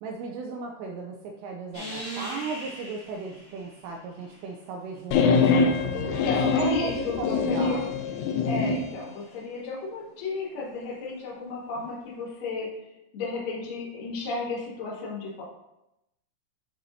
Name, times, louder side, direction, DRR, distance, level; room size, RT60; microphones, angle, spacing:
voice 1, 0.0-7.9, right 4 dB, 85° right, 1 dB, 2.5 m, -36 dB
sound 1, 1.7-4.8 5.9-9.4 11.7-11.8, right 1 dB, 15° left, 1.0 m, -43 dB
sound 2, 5.1-8.9, left 4 dB, 90° left, 3.2 m, -24 dB
voice 2, 5.9-7.8 8.5-12.9 13.1-15.4, left 4 dB, 55° left, -7 dB, 3.2 m, -33 dB
12.0 x 4.2 x 2.8 m, 0.89 s
omnidirectional pair, 5.6 m